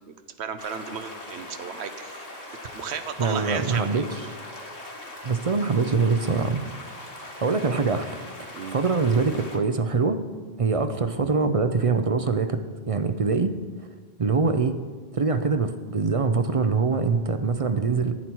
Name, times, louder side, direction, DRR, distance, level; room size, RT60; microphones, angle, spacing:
voice 1, 0.4-2.3 2.7-4.3 8.5-8.8, right 7 dB, 90° right, 10 dB, 1.1 m, -34 dB
sound 1, 0.6-9.6, left 1 dB, 35° left, 1.7 m, -40 dB
voice 2, 3.2-4.0 5.2-6.6 7.2-10.2 10.6-13.5 14.2-14.8 15.1-18.2, right 4 dB, 45° right, 9 dB, 0.5 m, -24 dB
11.0 x 9.8 x 4.5 m, 1.4 s
omnidirectional pair, 1.1 m